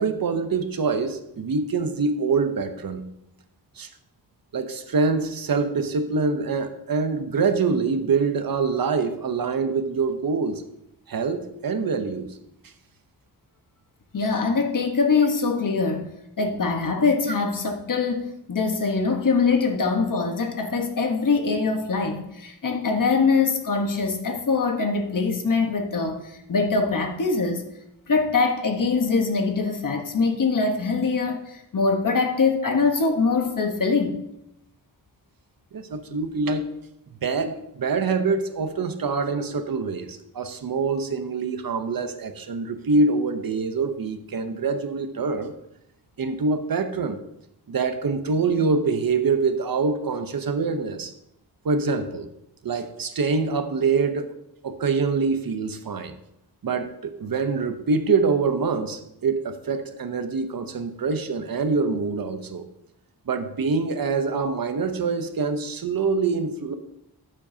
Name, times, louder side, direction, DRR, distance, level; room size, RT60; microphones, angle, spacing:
voice 1, 0.0-3.1 3.8-3.9 4.5-10.6 11.1-12.4 12.6-12.7 35.7-36.7 37.2-45.5 46.2-47.2 47.7-51.1 51.6-52.3 52.6-54.3 54.6-56.1 56.6-62.7 63.3-66.7, right 4 dB, 60° right, 9 dB, 0.8 m, -25 dB
voice 2, 14.1-16.1 16.4-27.6 28.1-34.2, left 4 dB, 50° left, 4 dB, 1.2 m, -23 dB
14.0 x 7.4 x 2.8 m, 0.83 s
wide cardioid pair, 155°, 40 cm